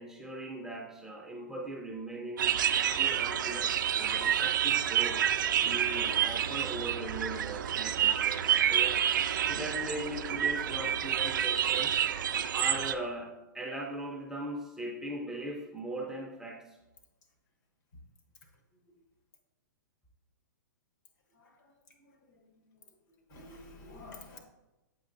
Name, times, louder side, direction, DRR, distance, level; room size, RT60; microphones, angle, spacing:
voice 1, 0.0-5.2 5.6-11.9 12.5-16.8, right 1 dB, 5° right, -1 dB, 0.5 m, -40 dB
sound 1, 2.4-12.9, right 10 dB, 70° right, 0.4 m, -29 dB
voice 2, 21.3-21.7 22.0-22.6 23.1-24.4, left 2 dB, 60° left, 3 dB, 1.3 m, -51 dB
7.3 x 5.6 x 2.6 m, 1.0 s
hypercardioid pair, 140°, 11 cm